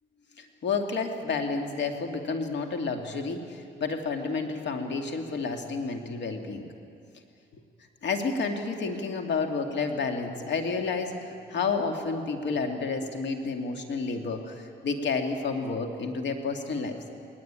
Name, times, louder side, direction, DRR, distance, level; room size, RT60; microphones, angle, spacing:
voice 1, 0.4-6.7 8.0-17.0, left 4 dB, 65° left, 4 dB, 2.5 m, -30 dB
20.0 x 19.0 x 9.0 m, 2.5 s
cardioid pair, 90°, 20 cm